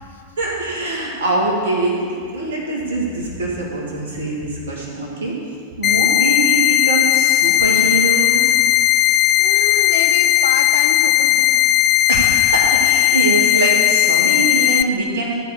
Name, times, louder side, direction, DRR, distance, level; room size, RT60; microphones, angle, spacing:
voice 1, 0.4-2.0 2.3-5.4 5.8-8.5 12.1-15.4, right 2 dB, 65° right, -2 dB, 2.2 m, -23 dB
sound 1, 5.8-14.8, left 14 dB, 35° left, 0.4 m, -16 dB
voice 2, 9.1-11.5, left 6 dB, 65° left, 5 dB, 0.9 m, -28 dB
14.0 x 5.1 x 7.2 m, 2.3 s
figure-of-eight pair, 90°, 0 cm